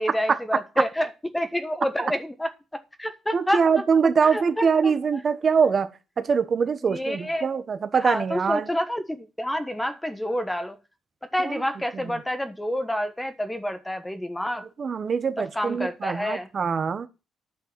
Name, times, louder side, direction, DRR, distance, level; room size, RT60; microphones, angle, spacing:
voice 1, 0.0-2.5 3.0-3.6 4.2-4.9 6.8-7.5 8.0-10.8 11.3-14.7 15.4-16.5, equal, 10° left, 1.3 m, -28 dB
voice 2, 3.3-5.9 6.2-8.7 11.4-11.6 11.9-12.1 14.8-17.1, right 6 dB, 45° right, 1.3 m, -23 dB
10.0 x 5.6 x 7.6 m
cardioid pair, 90°, 0 cm